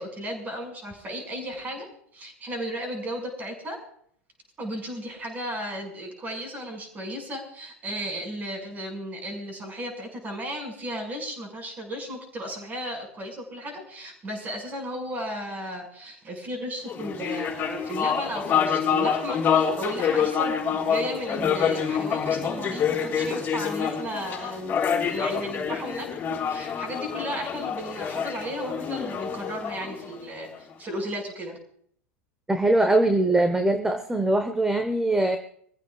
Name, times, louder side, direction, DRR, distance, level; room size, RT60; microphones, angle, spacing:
voice 1, 0.0-1.9 2.1-3.8 4.6-31.6, equal, 25° right, 3 dB, 5.6 m, -35 dB
sound 1, 16.9-30.5, left 7 dB, 25° left, 4.3 m, -27 dB
voice 2, 32.5-35.4, right 2 dB, 10° right, 7 dB, 1.1 m, -22 dB
25.0 x 15.0 x 2.4 m, 0.62 s
figure-of-eight pair, 85°, 7 cm